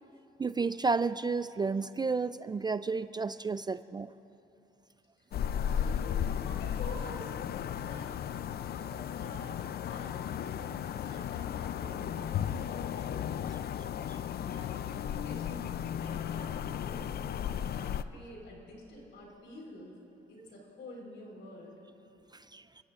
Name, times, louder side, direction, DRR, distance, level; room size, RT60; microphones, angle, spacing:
voice 1, 0.4-4.1 14.1-14.2 22.3-22.6, right 4 dB, 20° right, 13 dB, 0.3 m, -32 dB
sound 1, 5.3-18.0, left 9 dB, 55° left, 0.5 m, -35 dB
voice 2, 5.6-9.5 9.8-13.8 14.4-15.7 16.0-17.4 17.7-19.9 20.3-21.8 22.2-22.3, left 1 dB, 70° left, -1 dB, 4.2 m, -49 dB
30.0 x 15.5 x 2.5 m, 3.0 s
cardioid pair, 90°, 20 cm